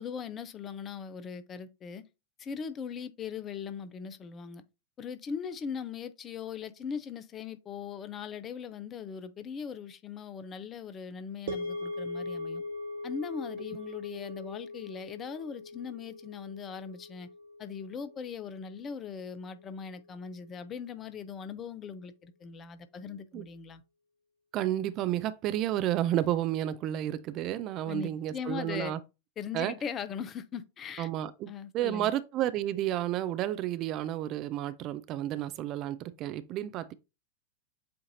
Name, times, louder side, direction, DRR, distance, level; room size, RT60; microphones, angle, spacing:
voice 1, 0.0-2.0 2.4-4.6 5.0-12.6 13.0-17.3 17.6-23.8 27.9-28.9 29.4-31.1 31.5-32.1, left 6 dB, 25° left, 0.5 m, -40 dB
sound 1, 11.5-19.8, left 2 dB, 55° right, 1.4 m, -41 dB
voice 2, 24.5-29.0 29.5-29.7 31.0-36.9, right 12 dB, 35° right, 0.3 m, -31 dB
7.6 x 2.5 x 2.7 m
figure-of-eight pair, 90°, 0 cm